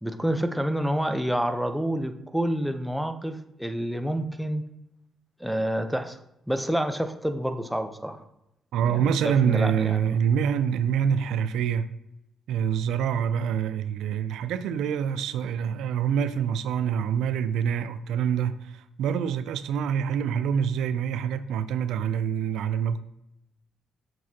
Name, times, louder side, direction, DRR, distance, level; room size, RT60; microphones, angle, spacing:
voice 1, 0.0-4.6 5.4-6.2 6.5-8.2 8.8-10.2, equal, ahead, 0.7 m, -28 dB
voice 2, 8.7-11.9 12.5-23.0, right 8 dB, 85° right, 0.4 m, -26 dB
7.4 x 6.0 x 2.8 m
cardioid pair, 90°, 0 cm